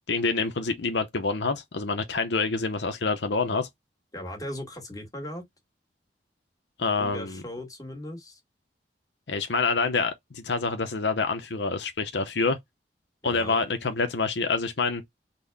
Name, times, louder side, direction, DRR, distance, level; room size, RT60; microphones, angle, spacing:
voice 1, 0.1-3.7 6.8-7.4 9.3-12.6 13.2-15.0, left 4 dB, 75° left, 0.7 m, -27 dB
voice 2, 4.1-5.4 7.0-8.4 13.3-13.6, left 1 dB, 20° left, 1.6 m, -38 dB
4.0 x 2.2 x 3.3 m
head